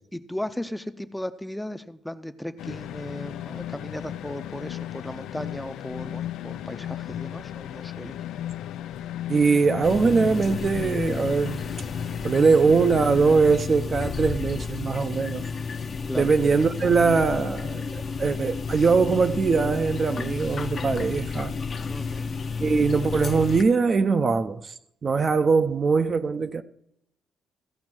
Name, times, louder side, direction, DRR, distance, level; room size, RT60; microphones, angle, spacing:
voice 1, 0.1-8.2 16.1-16.3 21.9-22.3, left 1 dB, 5° left, 0.6 m, -36 dB
sound 1, 2.6-13.6, left 11 dB, 85° left, 0.3 m, -35 dB
voice 2, 9.3-11.6 12.2-15.4 16.2-21.5 22.6-24.7 25.0-26.6, right 4 dB, 40° right, 0.5 m, -22 dB
sound 2, 9.8-23.6, left 5 dB, 45° left, 0.8 m, -32 dB
15.0 x 5.2 x 6.1 m
cardioid pair, 90°, 0 cm